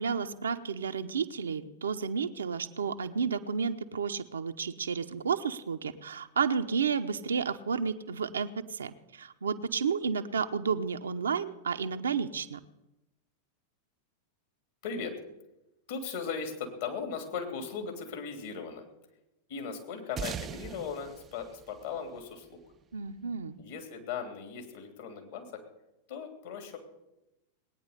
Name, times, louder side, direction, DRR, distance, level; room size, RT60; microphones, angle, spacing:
voice 1, 0.0-12.6 22.9-23.6, right 6 dB, 70° right, 8 dB, 0.8 m, -31 dB
voice 2, 14.8-15.2 15.9-18.8 19.5-22.6 23.6-25.7 26.1-26.8, left 6 dB, 55° left, 4 dB, 3.1 m, -38 dB
sound 1, 20.2-22.9, right 7 dB, 25° right, 0.4 m, -41 dB
19.5 x 9.5 x 6.8 m, 0.95 s
figure-of-eight pair, 90°, 0 cm